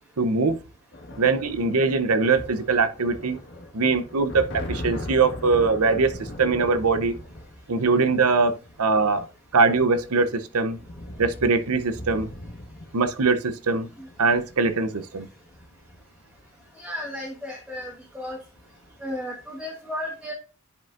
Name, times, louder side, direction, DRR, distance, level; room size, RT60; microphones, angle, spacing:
voice 1, 0.2-0.6 1.2-3.4 3.7-7.2 7.7-9.3 9.5-10.8 11.2-12.3 12.9-13.9 14.2-15.3, right 4 dB, 85° right, 0.8 m, -22 dB
sound 1, 0.9-16.7 17.8-18.1 18.4-19.1, left 1 dB, 50° left, 1.5 m, -40 dB
voice 2, 16.7-18.4 19.0-20.3, left 1 dB, 5° right, 1.2 m, -34 dB
11.0 x 5.1 x 2.5 m
head